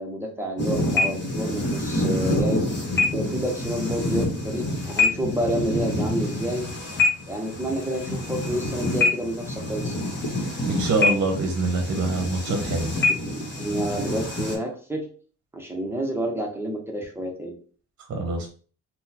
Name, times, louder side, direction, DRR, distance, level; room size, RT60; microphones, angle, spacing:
voice 1, 0.0-2.7 3.1-6.6 7.3-9.9 13.3-15.1 15.5-17.6, right 1 dB, 10° right, 1 dB, 0.7 m, -29 dB
sound 1, 0.6-14.5, left 2 dB, 40° left, 1.1 m, -26 dB
voice 2, 10.7-13.0 18.1-18.5, right 3 dB, 55° right, 3 dB, 0.8 m, -25 dB
3.6 x 2.1 x 2.8 m, 0.42 s
cardioid pair, 90°, 30 cm